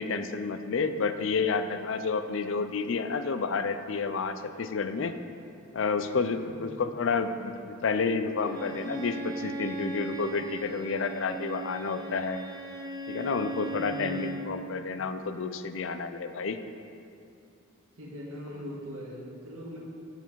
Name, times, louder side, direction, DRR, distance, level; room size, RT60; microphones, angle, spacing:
voice 1, 0.0-5.1 5.7-12.4 13.1-16.6, left 4 dB, 65° left, 10 dB, 0.4 m, -30 dB
voice 2, 6.3-6.8 13.7-14.3 18.0-19.8, equal, 90° right, -3 dB, 1.6 m, -41 dB
Bowed string instrument, 8.4-14.5, right 2 dB, 20° right, 0.7 m, -38 dB
7.9 x 6.9 x 4.6 m, 2.5 s
head